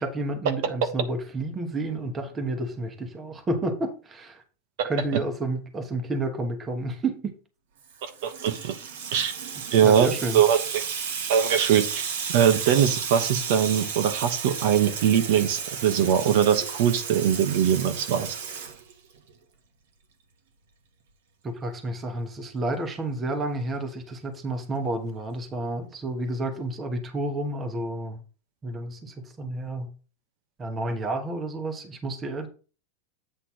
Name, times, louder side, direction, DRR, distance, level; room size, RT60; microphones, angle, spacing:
voice 1, 0.0-4.4 4.8-7.3 9.8-10.4 21.4-28.2 28.6-29.9 30.6-32.5, right 2 dB, 20° right, 6 dB, 1.1 m, -30 dB
Water tap faucet / Sink (filling or washing), 7.9-19.3, right 6 dB, 80° right, 1.6 m, -33 dB
voice 2, 8.0-8.8 9.1-9.3 9.7-10.8 11.3-18.4, right 9 dB, 60° right, 8 dB, 1.1 m, -22 dB
8.3 x 3.3 x 6.0 m, 0.35 s
supercardioid pair, 155°, 0 cm